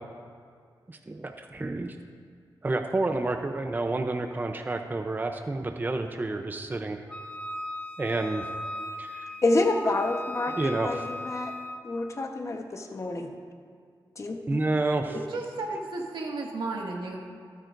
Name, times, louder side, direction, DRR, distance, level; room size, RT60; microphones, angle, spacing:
voice 1, 0.9-2.0 2.6-7.0 8.0-8.5 9.0-9.3 10.5-11.1 14.5-15.1, right 2 dB, 25° right, 5 dB, 0.6 m, -29 dB
Wind instrument woodwind instrument, 7.1-11.8, left 1 dB, 15° left, 0.8 m, -37 dB
voice 2, 9.4-11.5 11.8-13.3 14.2-14.6, left 2 dB, 40° left, 4 dB, 1.1 m, -28 dB
voice 3, 15.1-17.2, right 2 dB, 90° right, -1 dB, 1.9 m, -33 dB
26.0 x 9.1 x 2.6 m, 2.2 s
wide cardioid pair, 100°, 8 cm